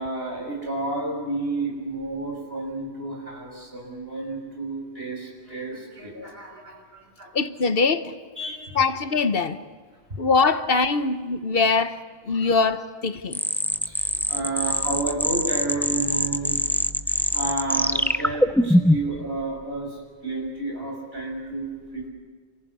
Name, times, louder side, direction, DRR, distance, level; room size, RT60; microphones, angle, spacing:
voice 1, 0.0-7.3 8.4-8.6 13.9-16.6 17.3-22.1, right 2 dB, 70° right, 0 dB, 6.5 m, -31 dB
voice 2, 7.3-8.1 8.8-9.6 10.2-12.0 12.3-13.4, left 4 dB, 65° left, 11 dB, 1.2 m, -22 dB
sound 1, 13.3-19.2, equal, 5° left, 0.4 m, -23 dB
28.5 x 15.0 x 9.7 m, 1.5 s
omnidirectional pair, 1.1 m